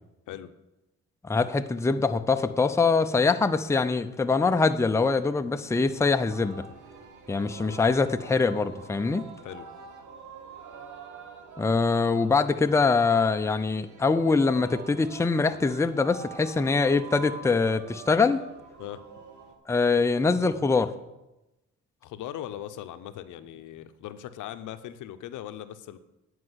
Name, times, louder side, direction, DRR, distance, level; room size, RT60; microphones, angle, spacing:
voice 1, 1.2-6.6 7.3-9.2 11.6-18.4 19.7-20.9, left 4 dB, 10° left, 8 dB, 0.5 m, -23 dB
Singing, 5.8-19.5, right 5 dB, 75° right, 1.3 m, -45 dB
voice 2, 22.0-26.0, left 11 dB, 80° left, 11 dB, 0.7 m, -39 dB
9.8 x 4.8 x 7.9 m, 0.98 s
cardioid pair, 90°, 30 cm